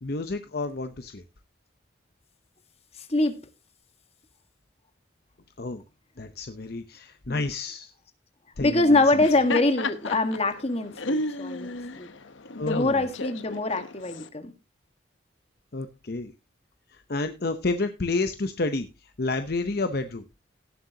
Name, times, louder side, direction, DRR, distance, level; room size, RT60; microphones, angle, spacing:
voice 1, 0.0-1.2 5.6-5.8 6.2-7.9 8.6-9.0 12.6-13.1 15.7-16.3 16.9-20.2, left 3 dB, 50° left, 9 dB, 0.8 m, -30 dB
voice 2, 8.6-12.1 12.6-14.5, left 2 dB, 30° left, 7 dB, 1.5 m, -24 dB
Laughter, 9.1-14.3, left 2 dB, 75° left, 1.0 m, -33 dB
17.5 x 7.7 x 2.8 m, 0.28 s
head